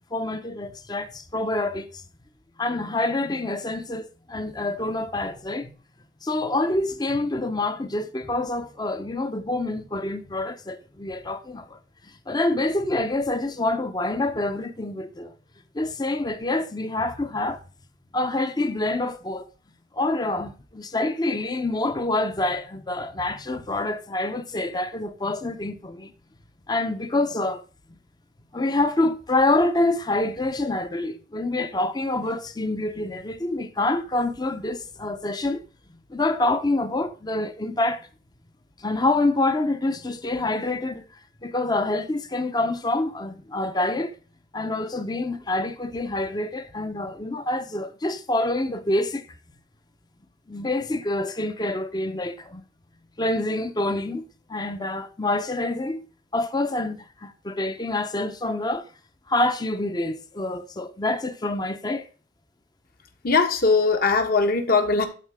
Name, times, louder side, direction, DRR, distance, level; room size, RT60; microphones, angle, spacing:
voice 1, 0.1-1.9 2.6-5.7 6.2-11.8 12.3-15.3 15.7-17.6 18.1-19.4 19.9-26.1 26.7-27.6 28.5-35.6 36.1-38.1 38.8-41.1 41.4-44.1 44.5-49.3 50.5-52.6 53.2-54.2 54.5-56.0 56.3-58.8 59.3-62.1, left 2 dB, 20° left, 0.7 m, -26 dB
voice 2, 63.2-65.1, left 4 dB, 50° left, 1.2 m, -20 dB
12.0 x 4.2 x 3.5 m
head